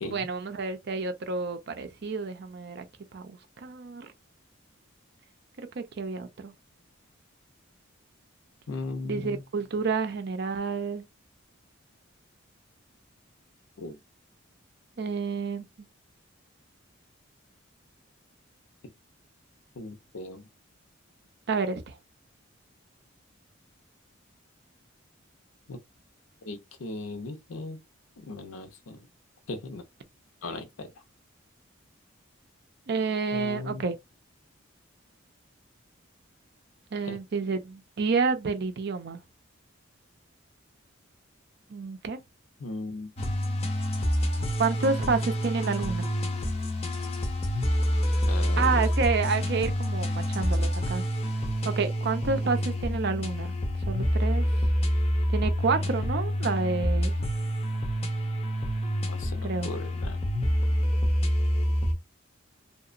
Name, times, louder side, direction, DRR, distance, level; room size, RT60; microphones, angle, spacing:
voice 1, 0.1-2.9 3.1-4.1 5.6-6.5 9.0-11.1 15.0-15.6 21.5-22.0 32.9-34.0 36.9-39.2 41.7-42.2 44.6-46.1 48.6-51.0 51.6-53.5 53.9-54.5 55.3-57.1 59.4-59.7, right 4 dB, 55° right, 0.5 m, -29 dB
voice 2, 8.7-9.4 13.8-14.0 19.8-20.4 25.7-25.8 26.4-27.8 28.2-29.1 29.5-29.8 30.4-30.9 33.3-33.8 37.0-37.2 42.6-43.1 48.3-48.8 59.1-60.2, left 2 dB, 85° left, 0.6 m, -37 dB
sound 1, 43.2-61.9, equal, 30° left, 0.5 m, -27 dB
2.8 x 2.0 x 2.5 m
head